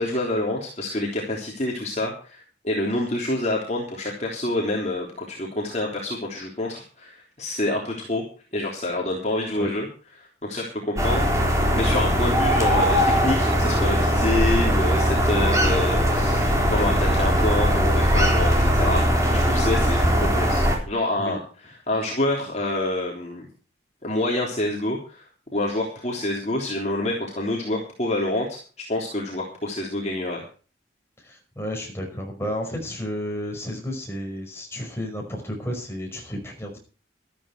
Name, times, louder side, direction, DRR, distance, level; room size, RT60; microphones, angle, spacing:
voice 1, 0.0-8.2 8.5-9.9 10.4-11.2 11.5-19.0 19.4-21.4 21.9-23.5 24.0-25.2 25.5-28.6 28.9-30.4, left 1 dB, 35° left, -2 dB, 3.4 m, -27 dB
sound 1, 11.0-20.8, equal, 15° right, 3.9 m, -20 dB
voice 2, 31.2-36.8, equal, 15° left, 0 dB, 5.2 m, -32 dB
13.5 x 13.0 x 4.6 m, 0.37 s
head